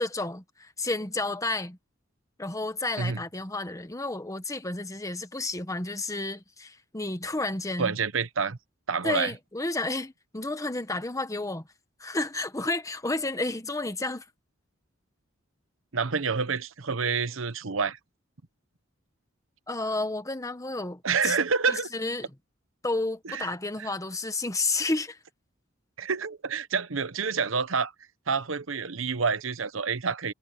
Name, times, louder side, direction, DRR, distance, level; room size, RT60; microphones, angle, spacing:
voice 1, 0.0-1.8 2.4-8.0 9.0-11.7 12.0-14.2 19.7-21.3 21.7-22.3 22.8-25.2, left 2 dB, 15° left, 1.4 m, -31 dB
voice 2, 7.8-8.6 8.9-9.3 15.9-18.0 21.0-21.9 23.2-23.5 23.8-23.9 26.0-27.9 28.3-30.3, right 5 dB, 75° right, 1.0 m, -28 dB
head